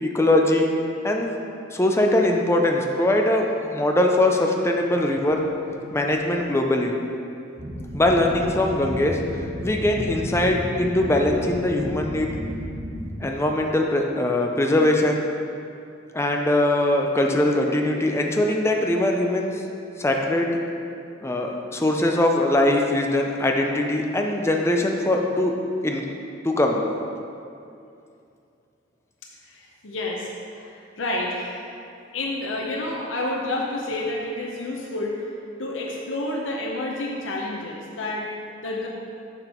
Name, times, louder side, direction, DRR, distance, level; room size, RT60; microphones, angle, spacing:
voice 1, 0.0-0.7 1.0-1.3 1.7-5.5 5.9-6.9 7.9-9.2 9.6-12.3 13.2-15.3 16.1-19.6 20.0-20.6 21.2-25.6 25.8-26.1 26.4-26.8, left 1 dB, 15° left, 1 dB, 0.5 m, -21 dB
sound 1, 7.6-13.0, equal, 75° right, 1.8 m, -32 dB
voice 2, 29.5-31.7 32.1-35.3 35.6-38.3 38.6-38.9, left 2 dB, 80° left, -2 dB, 0.8 m, -29 dB
7.1 x 5.9 x 4.4 m, 2.5 s
head